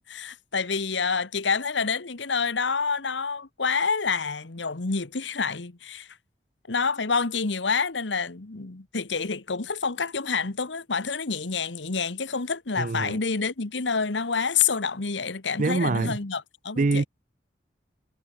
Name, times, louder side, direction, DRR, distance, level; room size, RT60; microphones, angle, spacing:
voice 1, 0.0-6.1 6.7-17.1, left 5 dB, 85° left, 1.3 m, -28 dB
voice 2, 12.8-13.2 15.6-16.2 16.8-17.0, right 3 dB, 45° right, 0.5 m, -24 dB
head